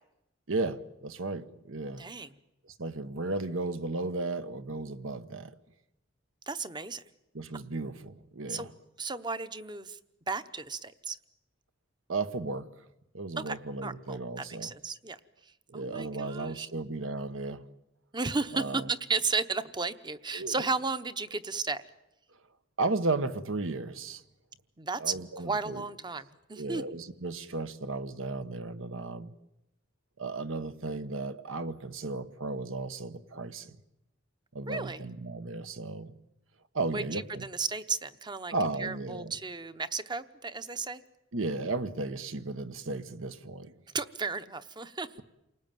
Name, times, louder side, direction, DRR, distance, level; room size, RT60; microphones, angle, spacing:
voice 1, 0.5-2.0 2.6-5.5 7.3-8.7 12.1-12.7 13.1-14.7 15.7-17.7 18.5-18.9 20.3-20.6 22.8-24.2 25.0-25.8 26.5-29.3 30.2-33.8 34.5-36.1 36.7-37.5 38.5-39.3 41.3-43.7, right 3 dB, 75° right, 1.2 m, -34 dB
voice 2, 2.0-2.3 6.5-7.0 8.5-8.7 9.0-10.0 10.3-11.2 13.4-15.2 15.7-16.7 18.1-21.8 24.8-26.8 34.7-35.0 36.9-38.5 38.8-41.0 43.9-45.2, right 4 dB, 20° right, 0.9 m, -34 dB
28.5 x 19.5 x 9.2 m
head